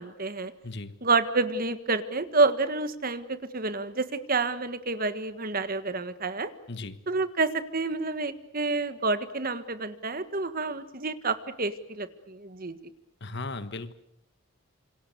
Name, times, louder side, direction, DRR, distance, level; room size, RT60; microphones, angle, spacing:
voice 1, 0.0-0.5 1.0-6.5 7.1-12.8, right 3 dB, 45° right, 12 dB, 1.6 m, -28 dB
voice 2, 0.6-0.9 6.7-7.0 13.2-13.9, left 3 dB, 55° left, 12 dB, 1.5 m, -36 dB
27.5 x 26.0 x 6.9 m, 0.73 s
head